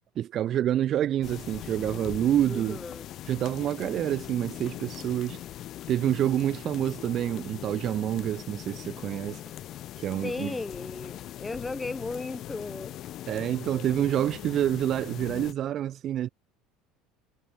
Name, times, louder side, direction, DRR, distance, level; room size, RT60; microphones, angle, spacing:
voice 1, 0.2-2.8 3.3-5.4 5.9-9.4 10.0-10.6 13.3-16.3, right 11 dB, 35° right, 0.9 m, -27 dB
sound 1, 1.2-15.5, left 13 dB, 40° left, 2.6 m, -41 dB
voice 2, 2.5-3.1 10.2-12.9, left 3 dB, 10° left, 3.1 m, -35 dB
cardioid pair, 155°, 0 cm